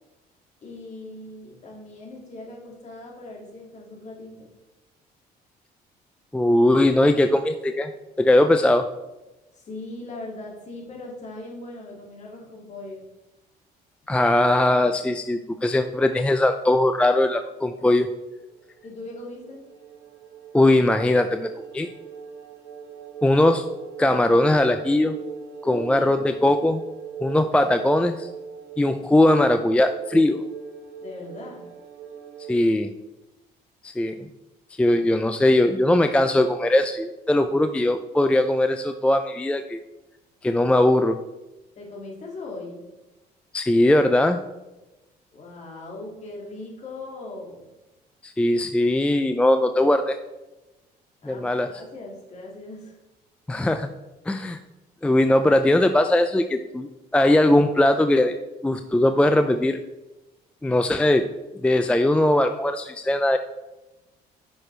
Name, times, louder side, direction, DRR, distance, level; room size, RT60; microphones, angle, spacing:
voice 1, 0.6-4.5 9.5-13.1 18.8-19.7 25.6-26.2 31.0-31.7 41.8-42.8 45.3-47.7 51.2-53.0, left 2 dB, 45° left, -1 dB, 2.3 m, -39 dB
voice 2, 6.3-7.9 8.2-8.9 14.1-18.1 20.5-21.9 23.2-23.7 24.0-25.2 25.7-26.8 27.2-28.3 28.8-30.4 32.5-32.9 33.8-34.2 34.8-39.8 40.4-41.2 43.5-44.4 48.2-50.2 51.2-51.7 53.5-53.9 54.3-54.6 55.0-58.4 58.6-59.8 60.6-61.3 61.6-63.4, left 1 dB, 5° left, 8 dB, 0.4 m, -20 dB
sound 1, 18.4-32.5, right 7 dB, 90° right, 1.6 m, -40 dB
9.7 x 6.2 x 3.3 m, 1.0 s
cardioid pair, 110°, 17 cm